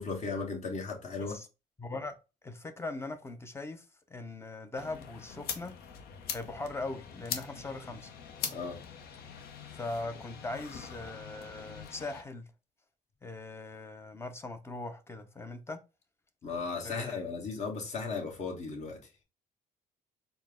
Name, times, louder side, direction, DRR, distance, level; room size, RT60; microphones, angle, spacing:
voice 1, 0.0-1.4 8.5-8.8 16.4-19.0, left 4 dB, 45° left, 1.3 m, -36 dB
voice 2, 1.8-2.2 2.4-3.8 4.1-5.7 6.3-8.1 9.7-12.5 13.2-15.8 16.8-17.2, left 2 dB, 15° left, 0.6 m, -40 dB
sound 1, 4.8-12.2, left 7 dB, 65° left, 0.7 m, -42 dB
4.3 x 2.1 x 3.5 m
cardioid pair, 110°, 17 cm